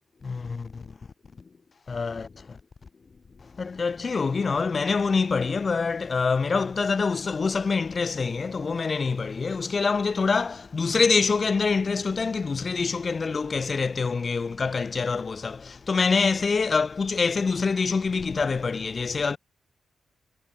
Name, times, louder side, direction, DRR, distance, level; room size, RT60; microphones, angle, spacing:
voice 1, 0.2-0.9 1.9-2.6 3.6-19.4, left 4 dB, 45° left, 0.7 m, -25 dB
cardioid pair, 65°, 0 cm